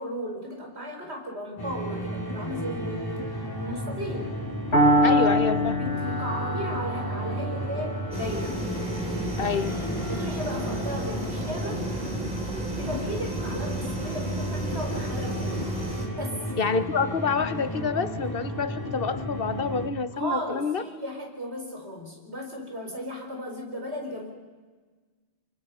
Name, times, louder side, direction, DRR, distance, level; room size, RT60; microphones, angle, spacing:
voice 1, 0.0-4.3 5.8-8.6 10.1-11.8 12.8-15.6 16.2-16.4 20.1-24.3, equal, 80° right, 1 dB, 5.2 m, -35 dB
sound 1, 1.6-19.9, equal, 20° left, 2.8 m, -33 dB
Piano, 4.7-12.7, equal, 80° left, 6.0 m, -27 dB
voice 2, 5.0-5.8 9.4-9.7 16.6-20.8, left 5 dB, 60° left, 12 dB, 1.1 m, -27 dB
sound 2, 8.1-16.1, right 1 dB, 45° right, 3.5 m, -34 dB
28.0 x 24.0 x 5.5 m, 1.4 s
omnidirectional pair, 1.1 m